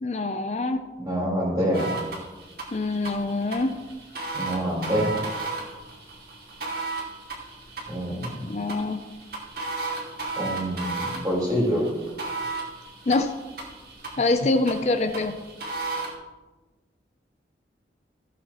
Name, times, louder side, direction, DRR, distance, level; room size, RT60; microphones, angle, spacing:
voice 1, 0.0-0.8 2.7-3.7 8.4-9.0 13.1-13.3 14.2-15.4, left 2 dB, 40° left, 7 dB, 0.5 m, -25 dB
voice 2, 1.0-1.9 4.3-5.3 7.9-8.4 10.4-11.9, equal, 25° right, -5 dB, 3.9 m, -26 dB
sound 1, 1.7-16.1, right 3 dB, 60° right, 2.4 m, -35 dB
15.5 x 8.3 x 3.0 m, 1.2 s
head